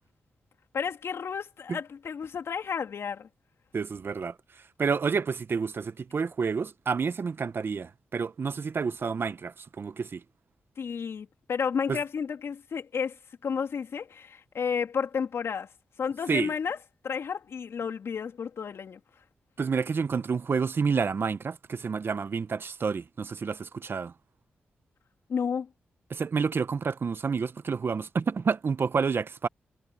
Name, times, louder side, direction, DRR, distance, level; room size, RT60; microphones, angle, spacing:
voice 1, 0.7-3.3 10.8-13.2 13.4-15.7 16.0-16.8 17.0-19.0 25.3-25.7, left 6 dB, 70° left, 3.3 m, -32 dB
voice 2, 3.7-4.3 4.8-10.2 11.9-12.0 16.3-16.5 19.6-24.1 26.1-29.5, right 5 dB, 55° right, 1.1 m, -29 dB
supercardioid pair, 45°, 5 cm